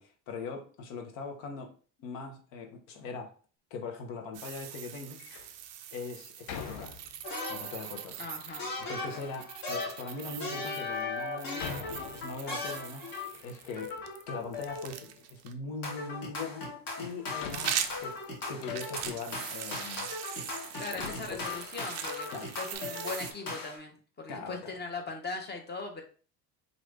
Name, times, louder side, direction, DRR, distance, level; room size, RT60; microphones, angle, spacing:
voice 1, 0.0-1.7 2.0-3.3 3.7-5.3 5.9-6.9 7.5-8.2 8.8-13.1 13.4-18.2 18.5-20.1 21.3-21.6 22.3-22.5 24.3-24.7, left 4 dB, 60° left, 4 dB, 1.0 m, -41 dB
sound 1, 4.3-15.5 17.1-23.3, right 10 dB, 35° right, 0.4 m, -41 dB
Door, 5.1-5.6 6.5-7.4 8.1-8.7 9.5-9.6 10.3-10.4 11.6-12.7 13.1-14.1 14.4-15.3 16.6-16.7 17.4-19.3 20.0-20.1 20.9-22.0 22.3-22.4 22.5-22.8, left 6 dB, 90° left, 0.6 m, -45 dB
sound 2, 7.2-8.0 8.6-13.4 13.8-15.0 15.8-23.8, left 3 dB, 40° left, 1.3 m, -38 dB
voice 2, 8.2-8.7 9.1-9.3 20.8-26.0, left 3 dB, 20° left, 4 dB, 0.8 m, -40 dB
3.0 x 2.6 x 3.3 m, 0.41 s
hypercardioid pair, 75°, 50 cm